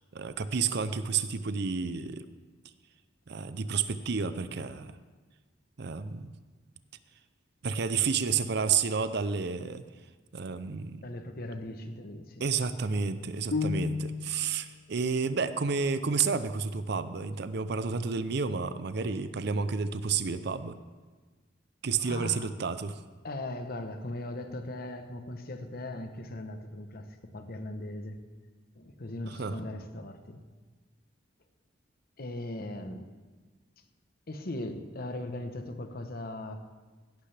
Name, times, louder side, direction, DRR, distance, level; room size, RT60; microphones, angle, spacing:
voice 1, 0.0-2.2 3.3-4.9 5.8-6.3 7.6-9.8 10.3-11.0 12.4-20.8 21.8-23.0 29.4-29.6, right 5 dB, 60° right, 12 dB, 0.6 m, -30 dB
voice 2, 11.0-12.4 22.0-22.5 23.2-28.2 28.7-30.4 32.2-33.1 34.3-36.6, left 1 dB, 55° left, 7 dB, 1.0 m, -39 dB
sound 1, 13.5-14.5, left 4 dB, 70° left, 0.6 m, -31 dB
16.5 x 11.5 x 3.4 m, 1.3 s
head